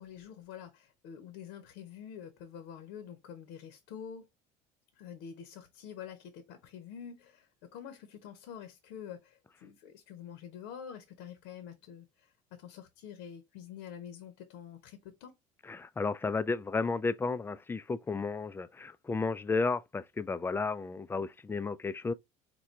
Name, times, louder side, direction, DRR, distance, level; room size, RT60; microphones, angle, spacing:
voice 1, 0.0-4.3 4.9-15.3, left 8 dB, 65° left, 0.8 m, -47 dB
voice 2, 15.7-22.1, left 4 dB, 10° left, 0.3 m, -33 dB
4.5 x 2.2 x 3.2 m
hypercardioid pair, 65°, 19 cm